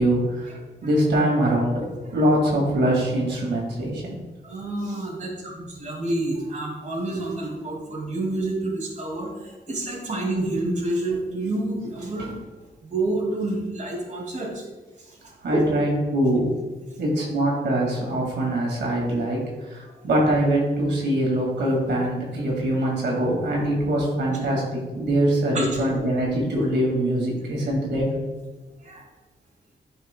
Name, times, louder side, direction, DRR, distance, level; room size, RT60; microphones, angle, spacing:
voice 1, 0.0-4.2 15.4-16.5 17.0-28.1, right 1 dB, 90° right, -3 dB, 2.0 m, -23 dB
voice 2, 4.4-12.4 12.8-14.6 15.0-15.7 24.3-24.4 25.5-25.7 28.8-29.1, right 2 dB, 45° right, -2 dB, 2.2 m, -28 dB
10.5 x 6.1 x 2.2 m, 1.2 s
wide cardioid pair, 100°, 17 cm